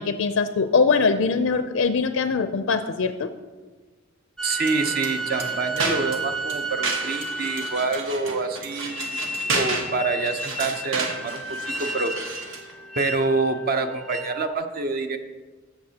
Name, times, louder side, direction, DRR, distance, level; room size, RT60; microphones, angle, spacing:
voice 1, 0.0-3.3, left 4 dB, 80° left, 9 dB, 0.4 m, -22 dB
sound 1, 4.4-8.1 8.9-14.5, right 2 dB, ahead, 0.4 m, -32 dB
voice 2, 4.4-12.1 13.0-15.2, right 3 dB, 50° right, 7 dB, 0.6 m, -27 dB
sound 2, 4.6-12.7, right 3 dB, 75° right, 1.1 m, -32 dB
13.5 x 7.0 x 2.8 m, 1.3 s
head